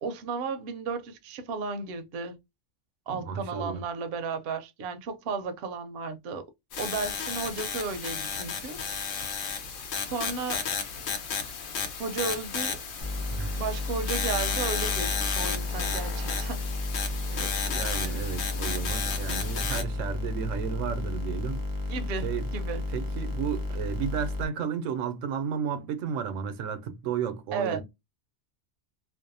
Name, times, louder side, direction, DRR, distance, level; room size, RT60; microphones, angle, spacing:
voice 1, 0.0-2.4 3.1-6.5 6.8-8.8 10.1-10.7 12.0-12.8 13.6-16.6 21.9-22.8 27.5-27.8, right 4 dB, 65° right, 0.7 m, -34 dB
voice 2, 3.1-3.8 13.3-13.5 17.3-21.6 22.2-22.5 22.7-27.8, right 7 dB, 85° right, 0.9 m, -33 dB
sound 1, 6.7-19.8, left 6 dB, 85° left, 1.0 m, -33 dB
sound 2, 13.0-24.5, left 2 dB, 25° right, 0.5 m, -32 dB
2.6 x 2.0 x 2.5 m
omnidirectional pair, 1.3 m